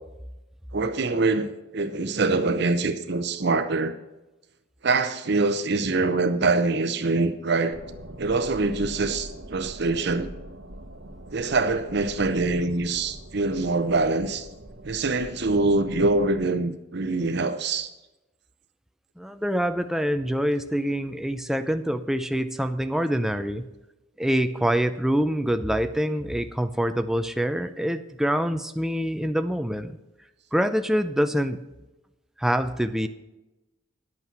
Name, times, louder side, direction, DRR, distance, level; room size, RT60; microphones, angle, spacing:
voice 1, 0.7-3.9 4.8-7.8 8.2-10.3 11.3-14.5 14.8-17.9, right 3 dB, 60° right, 0.8 m, -24 dB
sound 1, 7.7-16.6, right 1 dB, 90° right, 1.3 m, -42 dB
voice 2, 19.2-23.6 24.2-30.0 30.5-31.6 32.4-33.1, equal, ahead, 0.5 m, -25 dB
11.0 x 8.4 x 5.9 m
head